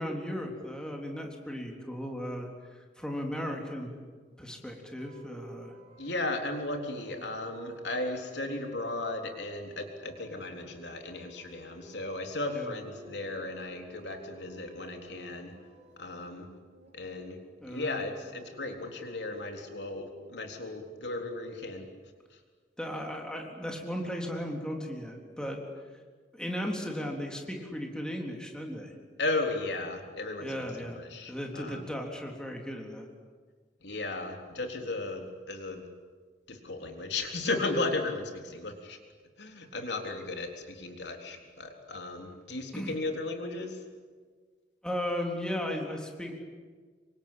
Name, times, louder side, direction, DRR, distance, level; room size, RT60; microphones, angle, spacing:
voice 1, 0.0-2.5 3.0-3.9 4.4-5.7 12.5-12.7 17.6-18.0 22.8-25.6 26.3-28.9 30.4-31.0 31.3-33.1 42.7-42.9 44.8-46.4, equal, 5° left, 1 dB, 3.7 m, -36 dB
sound 1, 5.0-16.9 18.0-20.3, right 2 dB, 35° right, 6.5 m, -52 dB
voice 2, 6.0-15.5 16.0-16.5 16.9-17.4 17.6-21.8 29.2-31.9 33.8-35.8 36.5-39.0 39.4-43.8, left 2 dB, 75° left, 3 dB, 3.8 m, -35 dB
27.5 x 24.5 x 8.8 m, 1.5 s
head